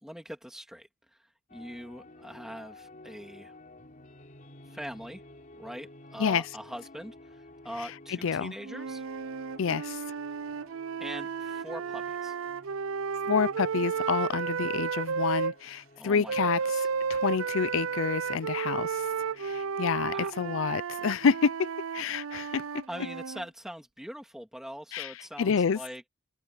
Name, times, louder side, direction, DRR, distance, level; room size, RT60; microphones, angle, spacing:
voice 1, 0.0-3.5 4.7-5.2 5.5-9.0 11.0-12.3 16.0-16.9 20.1-20.5 22.9-26.1, equal, ahead, 3.0 m, -43 dB
sound 1, 1.5-20.7, left 2 dB, 40° left, 3.8 m, -53 dB
voice 2, 8.1-8.5 9.6-10.0 13.3-19.1 19.4-22.6 24.9-25.1 25.4-25.8, left 6 dB, 65° left, 0.4 m, -28 dB
sound 2, 8.6-15.5 16.3-23.4, right 6 dB, 70° right, 0.5 m, -33 dB
open air
head